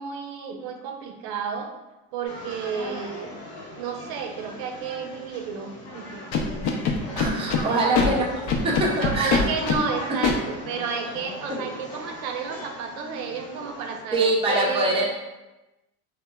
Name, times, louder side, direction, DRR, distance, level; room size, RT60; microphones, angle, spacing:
voice 1, 0.0-1.7 2.1-3.3 3.8-6.2 7.6-8.3 9.0-14.9, right 6 dB, 85° right, 4 dB, 0.5 m, -31 dB
sound 1, 2.3-14.0, left 1 dB, 45° left, 0.9 m, -39 dB
Scratching (performance technique), 6.3-7.6 7.9-8.1 8.5-9.8 10.2-10.3, left 5 dB, 65° left, 0.6 m, -22 dB
voice 2, 7.2-8.3 8.6-9.5 10.1-10.2 14.1-15.0, right 1 dB, 15° right, -3 dB, 0.4 m, -23 dB
2.9 x 2.1 x 2.2 m, 1.0 s
supercardioid pair, 115°, 41 cm